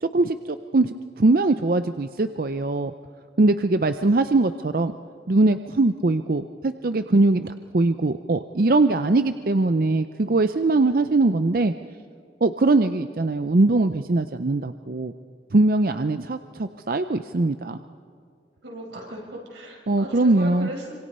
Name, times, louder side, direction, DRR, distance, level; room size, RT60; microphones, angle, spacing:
voice 1, 0.0-2.9 3.4-4.9 5.3-11.7 12.4-15.1 15.5-17.8 19.9-20.7, right 2 dB, 50° right, 10 dB, 0.6 m, -21 dB
voice 2, 18.6-20.9, right 1 dB, 85° right, -1 dB, 6.2 m, -37 dB
26.5 x 26.0 x 5.5 m, 2.3 s
head